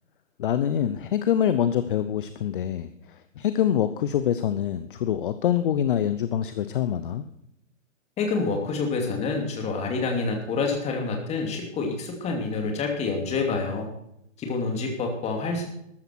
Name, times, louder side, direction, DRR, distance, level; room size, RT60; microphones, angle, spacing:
voice 1, 0.4-2.9 3.4-7.2, left 10 dB, 40° left, 12 dB, 0.8 m, -25 dB
voice 2, 8.2-13.9 14.4-15.7, left 4 dB, 15° left, 3 dB, 2.7 m, -27 dB
13.5 x 12.5 x 4.6 m, 0.78 s
figure-of-eight pair, 130°, 39 cm